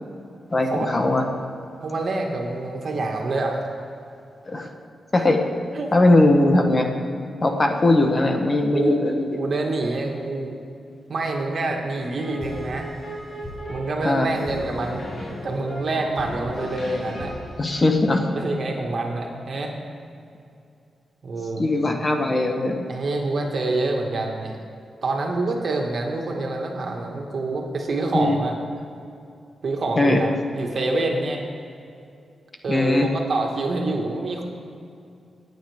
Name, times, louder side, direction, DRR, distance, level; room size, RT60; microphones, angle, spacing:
voice 1, 0.5-1.3 4.4-4.7 5.1-5.4 5.9-6.9 7.4-9.4 14.0-14.3 17.6-18.3 21.6-22.9 28.1-28.4 30.0-30.2 32.7-33.1, left 2 dB, 30° left, 3 dB, 1.1 m, -20 dB
voice 2, 1.8-3.6 5.8-5.9 8.7-10.6 11.1-12.9 13.7-15.0 15.4-17.3 18.4-19.7 21.2-21.7 22.9-24.6 25.0-28.5 29.6-31.4 32.6-34.4, right 2 dB, 50° right, 1 dB, 1.9 m, -26 dB
sound 1, 12.2-18.5, left 1 dB, 55° left, 4.1 m, -35 dB
26.0 x 9.1 x 3.6 m, 2.5 s
wide cardioid pair, 140°, 0 cm